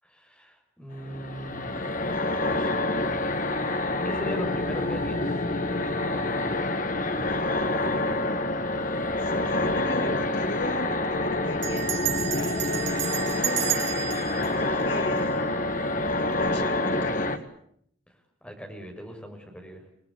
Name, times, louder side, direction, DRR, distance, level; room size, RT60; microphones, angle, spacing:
voice 1, 0.0-2.0 2.4-2.9 3.4-5.5 5.9-7.0 18.4-19.8, equal, 5° left, 2 dB, 6.1 m, -40 dB
sound 1, 1.0-17.4, left 2 dB, 45° left, 1.9 m, -27 dB
voice 2, 9.2-13.7 14.3-15.5 16.1-17.4, left 1 dB, 65° left, 3 dB, 4.1 m, -36 dB
Bell, 9.5-9.9 10.1-10.2 10.5-10.8 11.6-15.7, right 11 dB, 80° right, 3.7 m, -32 dB
28.5 x 20.0 x 8.7 m, 0.68 s
head